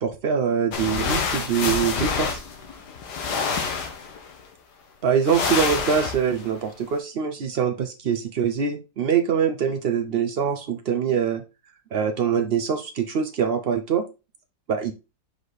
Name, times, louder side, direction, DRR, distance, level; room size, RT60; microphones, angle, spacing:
voice 1, 0.0-2.4 5.0-11.4 11.9-14.0 14.7-14.9, right 7 dB, 85° right, 6 dB, 0.5 m, -24 dB
sound 1, 0.7-4.4 5.2-6.5, left 5 dB, 70° left, 1.7 m, -27 dB
5.2 x 4.9 x 4.0 m, 0.28 s
omnidirectional pair, 1.9 m